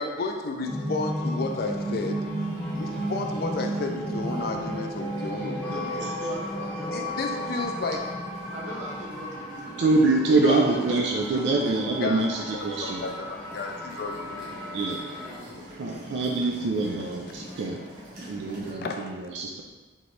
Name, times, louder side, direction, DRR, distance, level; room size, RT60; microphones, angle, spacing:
voice 1, 0.0-2.2 2.7-5.9 6.9-8.1 10.3-11.0 11.3-14.5 18.8-19.1, left 3 dB, 55° left, 4 dB, 0.4 m, -32 dB
sound 1, 0.6-15.4, equal, 10° left, 0.7 m, -34 dB
sound 2, 1.4-18.7, equal, 55° right, 1.2 m, -46 dB
voice 2, 5.6-7.8 8.5-10.3 10.8-11.7 15.0-16.9, equal, 40° right, -2 dB, 0.7 m, -41 dB
voice 3, 9.8-13.0 14.7-15.0 15.8-17.8 18.3-19.6, right 3 dB, 75° right, 0 dB, 0.4 m, -25 dB
4.3 x 2.9 x 3.2 m, 1.3 s
head